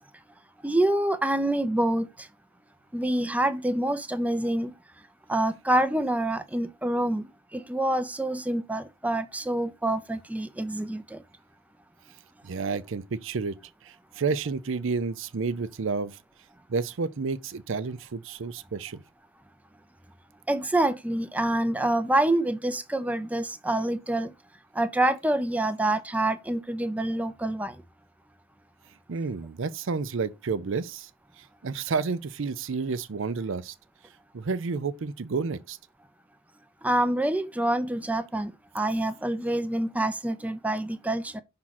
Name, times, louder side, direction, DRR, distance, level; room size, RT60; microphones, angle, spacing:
voice 1, 0.6-2.3 2.9-4.7 5.3-11.2 20.5-24.3 24.7-27.8 36.8-41.4, right 1 dB, 5° right, 0.5 m, -26 dB
voice 2, 12.4-13.6 13.8-16.2 16.7-19.0 29.1-31.1 31.4-33.7 34.3-35.8, right 4 dB, 65° right, 0.5 m, -30 dB
6.0 x 3.7 x 5.8 m
head